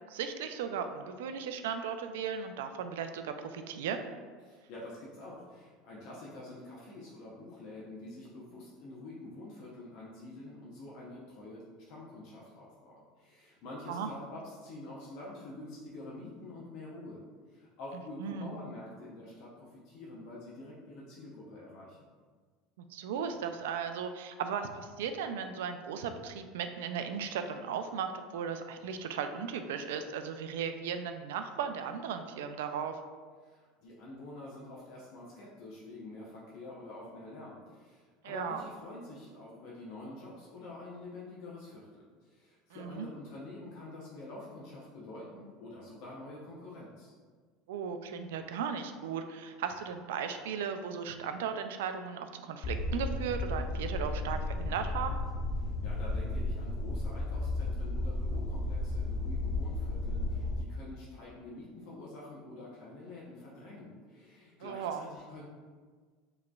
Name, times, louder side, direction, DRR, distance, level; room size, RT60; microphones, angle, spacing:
voice 1, 0.1-4.1 13.9-14.1 18.2-18.5 22.8-33.0 38.2-38.6 42.7-43.1 47.7-55.2 64.6-65.0, right 7 dB, 90° right, 8 dB, 0.3 m, -36 dB
voice 2, 4.4-17.2 17.5-22.0 33.4-47.1 55.6-65.5, left 2 dB, 65° left, -5 dB, 0.7 m, -47 dB
sound 1, 52.6-60.6, left 2 dB, 35° left, 0.3 m, -33 dB
4.8 x 3.1 x 2.3 m, 1.5 s
supercardioid pair, 125°, 0 cm